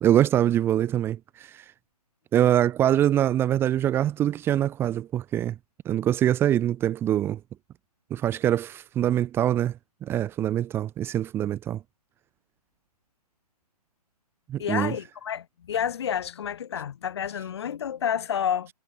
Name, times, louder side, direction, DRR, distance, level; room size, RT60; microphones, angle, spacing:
voice 1, 0.0-1.6 2.3-5.5 5.9-7.4 8.1-9.7 10.0-11.8 14.5-14.9, right 11 dB, 10° right, 2.3 m, -24 dB
voice 2, 14.6-18.7, left 9 dB, 40° left, 5.5 m, -29 dB
figure-of-eight pair, 140°, 21 cm